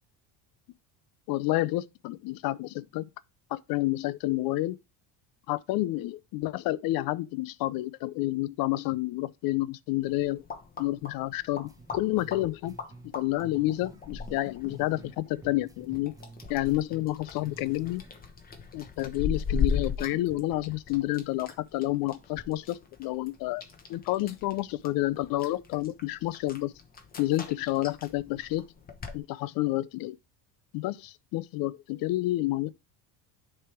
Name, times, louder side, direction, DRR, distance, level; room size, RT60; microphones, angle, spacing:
voice 1, 1.3-3.0 3.5-4.8 5.5-10.4 10.8-12.7 13.1-16.1 16.5-18.0 18.7-23.6 23.9-26.7 27.2-28.6 29.1-30.2 30.7-32.7, left 17 dB, 55° left, 0.5 m, -29 dB
sound 1, 10.0-29.2, left 6 dB, 20° left, 0.9 m, -38 dB
sound 2, 11.6-15.2 15.4-18.1, right 2 dB, 10° right, 0.3 m, -50 dB
10.0 x 3.4 x 4.4 m
cardioid pair, 150°, 44 cm